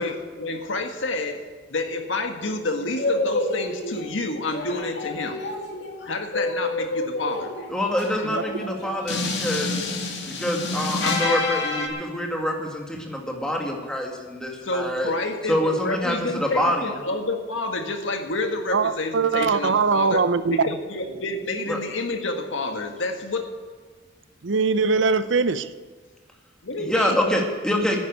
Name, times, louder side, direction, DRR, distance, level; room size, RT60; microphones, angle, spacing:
voice 1, 0.0-1.4 1.7-5.4 6.1-7.5 7.8-8.3 9.1-9.2 14.6-23.4 26.6-27.2, left 2 dB, 85° left, 1.7 m, -29 dB
sound 1, 2.9-4.1 4.5-11.9, left 2 dB, 65° left, 2.5 m, -28 dB
voice 2, 7.7-9.8 10.3-15.1 15.5-16.9 21.7-21.8 26.8-28.0, equal, 5° left, 2.0 m, -26 dB
voice 3, 18.7-20.6 24.4-25.7, right 4 dB, 75° right, 0.6 m, -21 dB
10.5 x 9.7 x 9.5 m
head